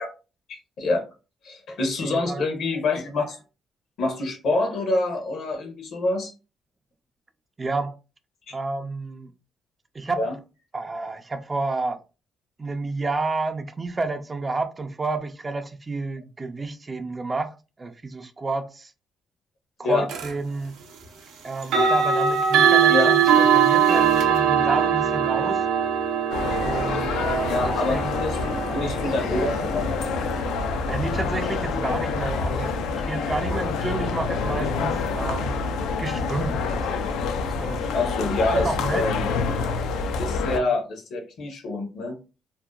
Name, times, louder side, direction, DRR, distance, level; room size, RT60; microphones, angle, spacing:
voice 1, 0.5-1.0 1.4-3.4 4.0-6.3 8.5-8.6 10.2-10.4 19.8-20.1 22.9-23.1 27.4-30.0 37.9-39.2 40.2-42.2, left 2 dB, 70° left, 0.8 m, -26 dB
voice 2, 2.0-2.4 7.6-8.0 8.5-9.3 9.9-10.3 10.7-12.0 12.6-18.9 19.8-20.8 21.4-25.6 26.6-28.3 30.9-35.6 36.0-37.9 38.6-39.0 40.4-40.7, right 3 dB, 25° right, 0.4 m, -30 dB
sound 1, 20.1-20.3 21.6-32.5, right 7 dB, 90° right, 0.5 m, -22 dB
sound 2, 26.3-40.6, left 4 dB, 90° left, 0.3 m, -27 dB
2.6 x 2.1 x 2.2 m
cardioid pair, 90°, 0 cm